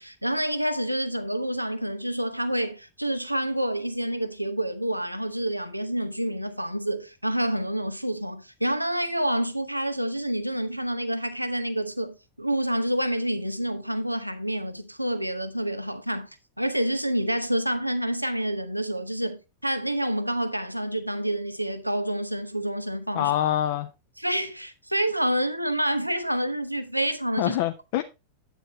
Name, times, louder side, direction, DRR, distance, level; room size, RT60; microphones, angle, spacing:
voice 1, 0.0-16.3 16.6-23.3 24.2-27.6, right 1 dB, 90° right, 1.0 m, -28 dB
voice 2, 23.1-23.9 27.4-28.0, left 12 dB, 50° left, 0.8 m, -25 dB
9.2 x 8.9 x 3.1 m
figure-of-eight pair, 90°, 0 cm